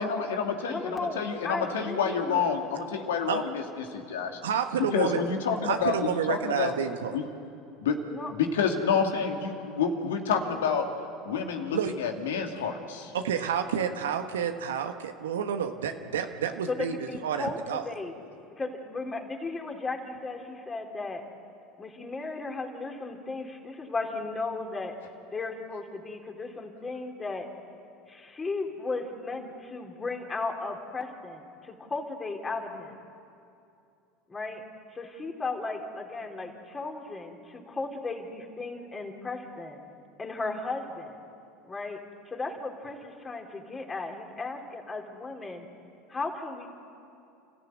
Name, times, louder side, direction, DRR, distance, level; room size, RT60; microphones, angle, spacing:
voice 1, 0.0-4.4 4.8-6.7 7.1-7.2 7.8-8.0 8.3-10.9 11.2-13.1, left 6 dB, 80° left, 3 dB, 2.6 m, -28 dB
voice 2, 0.6-2.4 8.1-8.3 16.7-18.1 18.6-21.2 21.8-25.0 25.3-27.5 28.1-33.0 34.3-34.6 34.9-39.8 40.2-41.2 41.7-42.0 42.3-45.7 46.1-46.7, left 3 dB, 20° left, 1 dB, 4.0 m, -35 dB
voice 3, 4.4-5.2 5.6-7.1 11.7-11.9 13.1-16.9 17.2-17.8, right 8 dB, 85° right, 6 dB, 1.3 m, -29 dB
29.5 x 15.0 x 9.5 m, 2.6 s
hypercardioid pair, 80°, 0 cm